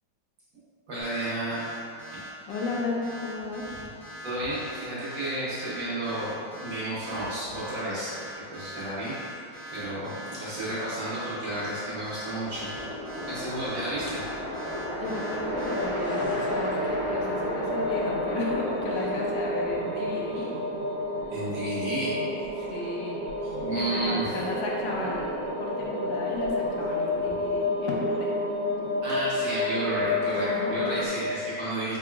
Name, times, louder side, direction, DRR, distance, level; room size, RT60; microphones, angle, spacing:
voice 1, 0.9-1.6 2.1-2.2 4.2-8.1 8.5-9.1 9.7-12.7 13.3-14.2 21.3-22.1 23.5-24.3 29.0-32.0, right 1 dB, 55° right, -10 dB, 1.2 m, -32 dB
sound 1, 1.0-15.8, right 1 dB, 15° left, 0.5 m, -42 dB
voice 2, 2.5-3.6 15.0-20.5 22.6-23.3 23.7-28.3 30.4-30.8, left 2 dB, 85° left, -2 dB, 1.3 m, -34 dB
sound 2, 11.7-20.7, equal, 55° left, 0.9 m, -35 dB
sound 3, 15.5-31.1, left 2 dB, 85° right, 1.4 m, -30 dB
3.8 x 3.5 x 2.2 m, 2.4 s
omnidirectional pair, 1.9 m